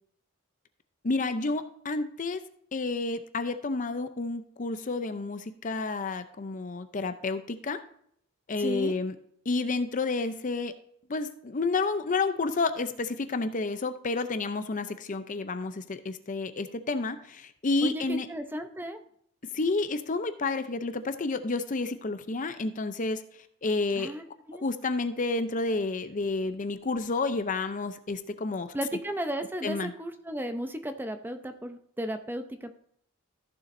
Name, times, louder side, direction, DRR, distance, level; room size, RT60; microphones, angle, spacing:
voice 1, 1.0-2.4 2.7-7.8 8.5-9.1 9.5-10.7 11.1-18.3 19.5-23.2 23.6-24.1 24.6-28.7 29.6-29.9, left 3 dB, 40° left, 10 dB, 0.6 m, -30 dB
voice 2, 8.6-8.9 17.8-19.0 23.9-24.7 28.7-32.7, equal, 10° right, 7 dB, 0.7 m, -34 dB
14.5 x 6.9 x 2.6 m, 0.67 s
head